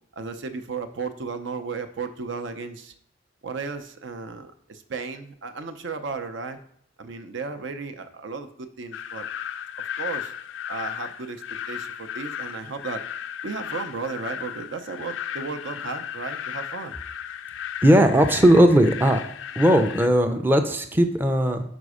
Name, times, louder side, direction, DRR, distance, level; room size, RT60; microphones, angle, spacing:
voice 1, 0.2-2.9 3.4-6.6 7.0-9.3 10.0-10.3 10.7-13.1 13.4-17.0, right 4 dB, 70° right, 8 dB, 0.6 m, -34 dB
sound 1, 8.9-20.1, left 9 dB, 75° left, 0.4 m, -35 dB
voice 2, 17.8-19.2 19.6-21.6, equal, 10° right, 5 dB, 0.5 m, -18 dB
5.2 x 5.0 x 4.8 m, 0.69 s
head